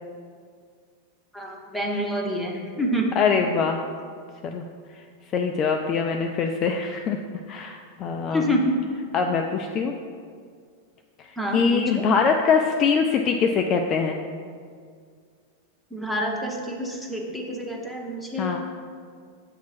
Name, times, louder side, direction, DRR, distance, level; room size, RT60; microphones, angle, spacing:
voice 1, 1.3-3.2 8.3-8.8 11.4-12.0 15.9-18.6, equal, 5° left, -2 dB, 1.0 m, -27 dB
voice 2, 3.2-3.8 4.4-4.6 5.3-7.2 7.5-8.5 9.1-9.9 11.5-14.2 18.4-18.6, left 5 dB, 30° left, 3 dB, 0.3 m, -23 dB
7.3 x 2.9 x 5.8 m, 2.1 s
figure-of-eight pair, 90°, 0 cm